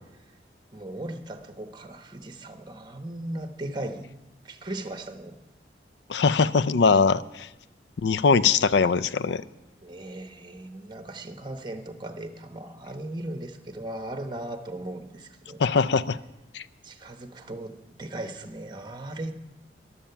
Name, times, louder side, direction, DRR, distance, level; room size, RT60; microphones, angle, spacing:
voice 1, 0.7-4.1 4.4-5.4 9.8-15.6 16.8-19.3, right 1 dB, 25° right, 7 dB, 0.9 m, -37 dB
voice 2, 6.1-7.5 8.0-9.4 15.6-16.2 16.5-16.6, left 5 dB, 75° left, 16 dB, 0.4 m, -21 dB
14.5 x 11.5 x 5.7 m, 0.96 s
head